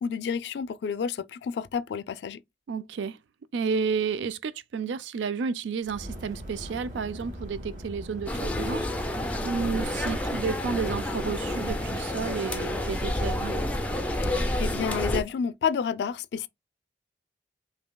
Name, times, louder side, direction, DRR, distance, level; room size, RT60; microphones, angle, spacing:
voice 1, 0.0-2.4 14.2-16.5, left 6 dB, 70° left, 0.3 m, -30 dB
voice 2, 2.7-3.2 3.5-8.9 9.4-13.6, right 5 dB, 85° right, 0.4 m, -31 dB
Fire, 5.8-11.1, equal, 45° right, 1.6 m, -42 dB
sound 1, 8.3-15.2, left 1 dB, 10° left, 0.4 m, -29 dB
5.1 x 2.7 x 2.3 m
head